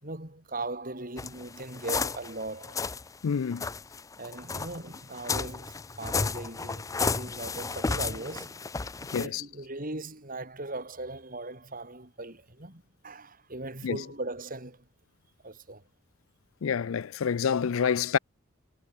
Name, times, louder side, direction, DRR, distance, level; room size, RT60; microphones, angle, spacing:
voice 1, 0.0-2.8 4.2-8.6 9.1-14.9 15.4-15.8, right 2 dB, 45° right, 4.6 m, -39 dB
sound 1, 1.2-3.1 3.5-9.3, left 4 dB, 15° left, 0.4 m, -33 dB
voice 2, 3.2-3.7 9.1-9.4 13.8-14.0 16.6-18.2, left 7 dB, 90° left, 0.4 m, -27 dB
head